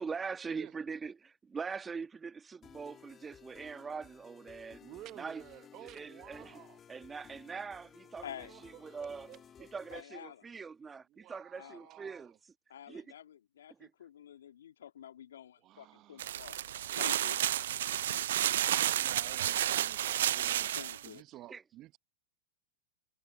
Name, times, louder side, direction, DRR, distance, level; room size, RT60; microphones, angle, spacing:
voice 1, 0.0-4.8 5.1-5.4 5.8-6.6 6.9-9.3 9.6-12.5 12.9-13.1 13.8-13.9 21.3-21.6, right 5 dB, 15° right, 1.5 m, -42 dB
sound 1, 2.6-10.0, left 8 dB, 25° left, 3.0 m, -57 dB
voice 2, 4.8-6.8 8.2-9.7 11.1-12.4 15.6-16.4 18.7-20.7 21.0-22.0, right 15 dB, 40° right, 1.0 m, -53 dB
voice 3, 8.2-8.5 9.9-10.5 11.6-11.9 12.7-16.6 16.9-17.4 20.8-21.2, left 10 dB, 75° left, 2.5 m, -49 dB
sound 2, 16.2-21.1, right 12 dB, 70° right, 0.5 m, -31 dB
hypercardioid pair, 100°, 0 cm